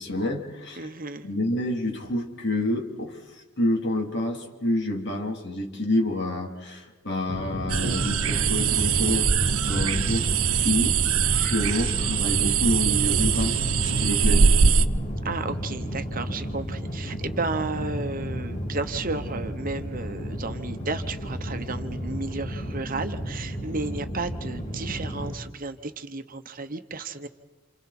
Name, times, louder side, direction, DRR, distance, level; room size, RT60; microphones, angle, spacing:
voice 1, 0.0-0.9 1.2-10.4 10.6-11.0 11.2-14.5, left 1 dB, 50° left, 2 dB, 3.4 m, -28 dB
voice 2, 0.8-1.3 9.7-9.8 15.2-27.3, right 3 dB, 40° right, 8 dB, 1.1 m, -33 dB
sound 1, 7.3-25.3, equal, 35° left, 2.5 m, -33 dB
sound 2, 7.7-14.9, right 6 dB, 75° right, 0.9 m, -22 dB
30.0 x 28.5 x 4.4 m, 1.2 s
head